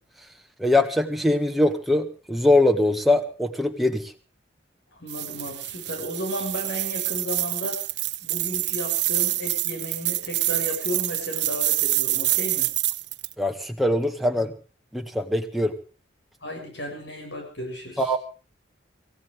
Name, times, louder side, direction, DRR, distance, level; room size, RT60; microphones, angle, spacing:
voice 1, 0.6-4.1 13.4-14.5 14.9-15.7 18.0-18.2, left 1 dB, ahead, 4 dB, 1.7 m, -22 dB
voice 2, 5.0-7.8 8.2-12.7 16.4-18.1, equal, 75° left, 2 dB, 7.4 m, -33 dB
sound 1, 5.1-13.3, right 17 dB, 70° right, 1.0 m, -27 dB
26.0 x 16.0 x 3.4 m, 0.36 s
head